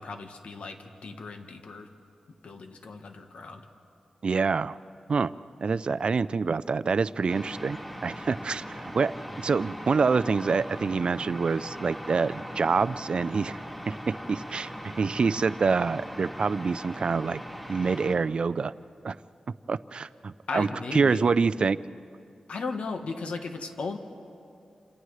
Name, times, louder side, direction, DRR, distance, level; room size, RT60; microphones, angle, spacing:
voice 1, 0.0-1.9 2.4-3.7 20.5-21.3 22.5-24.0, left 4 dB, 75° left, 5 dB, 1.2 m, -36 dB
voice 2, 4.2-4.8 5.1-5.3 5.6-9.1 9.4-13.6 13.9-14.7 15.0-17.4 17.7-18.7 19.0-19.2 19.7-21.8, right 4 dB, 55° right, 16 dB, 0.4 m, -26 dB
sound 1, 7.3-18.1, equal, 10° left, 2.7 m, -40 dB
29.5 x 27.0 x 3.2 m, 2.5 s
wide cardioid pair, 105°, 2 cm